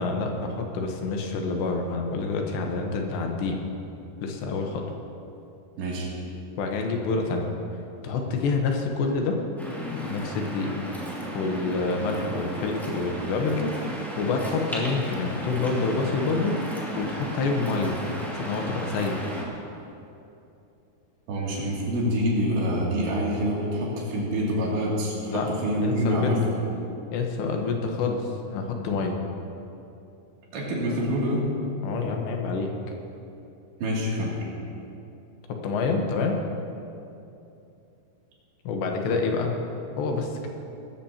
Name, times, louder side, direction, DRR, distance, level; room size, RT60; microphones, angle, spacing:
voice 1, 0.0-3.6 4.2-4.8 6.6-7.5 8.0-9.4 9.8-10.8 11.3-13.7 14.2-16.6 17.0-18.0 18.3-19.2 25.3-25.5 25.8-26.4 27.1-29.2 31.8-32.7 35.6-36.4 38.6-39.6 40.0-40.4, left 4 dB, 75° left, 2 dB, 3.2 m, -27 dB
voice 2, 5.8-6.1 21.3-26.7 30.5-31.5 33.8-34.4, equal, 85° right, -5 dB, 5.0 m, -26 dB
Waves surf, 9.6-19.4, equal, ahead, 1.2 m, -34 dB
19.5 x 14.5 x 2.9 m, 2.7 s
omnidirectional pair, 5.1 m